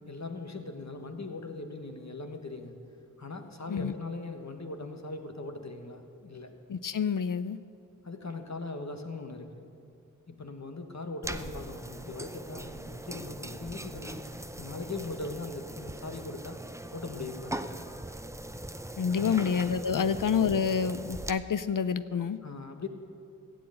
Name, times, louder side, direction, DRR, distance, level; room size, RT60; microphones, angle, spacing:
voice 1, 0.1-2.7 3.2-6.5 8.0-9.7 10.3-16.6 16.9-17.6 19.2-19.6 19.9-20.2 22.4-22.9, left 3 dB, 55° left, 5 dB, 1.4 m, -40 dB
voice 2, 6.7-7.6 19.0-22.4, left 6 dB, 70° left, 13 dB, 0.5 m, -28 dB
sound 1, 11.2-21.3, right 1 dB, 10° right, 0.6 m, -41 dB
15.5 x 7.9 x 8.7 m, 2.5 s
wide cardioid pair, 40°, 33 cm